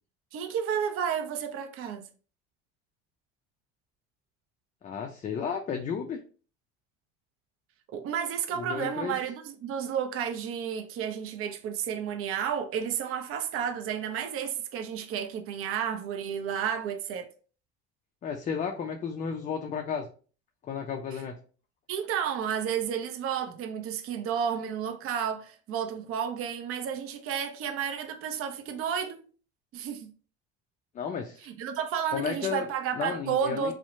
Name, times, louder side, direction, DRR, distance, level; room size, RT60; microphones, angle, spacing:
voice 1, 0.3-2.1 7.9-17.3 21.9-29.2 29.7-30.1 31.4-33.7, right 8 dB, 45° right, 0.5 m, -31 dB
voice 2, 4.8-6.2 8.5-9.2 18.2-20.1 20.6-21.4 30.9-31.5 32.1-32.7 32.9-33.7, left 6 dB, 25° left, 0.3 m, -33 dB
2.7 x 2.1 x 2.5 m
supercardioid pair, 85°, 31 cm